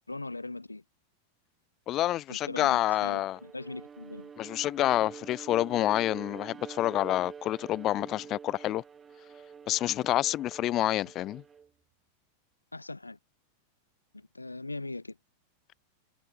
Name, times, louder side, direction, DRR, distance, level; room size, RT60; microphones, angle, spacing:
voice 1, 0.1-0.8 2.3-4.3 12.7-13.2 14.1-15.2, left 2 dB, 80° left, 0.9 m, -40 dB
voice 2, 1.9-3.4 4.4-8.8 9.7-11.4, left 14 dB, 35° left, 0.9 m, -28 dB
Bowed string instrument, 3.3-11.7, right 6 dB, 20° right, 1.9 m, -47 dB
figure-of-eight pair, 90°, 0 cm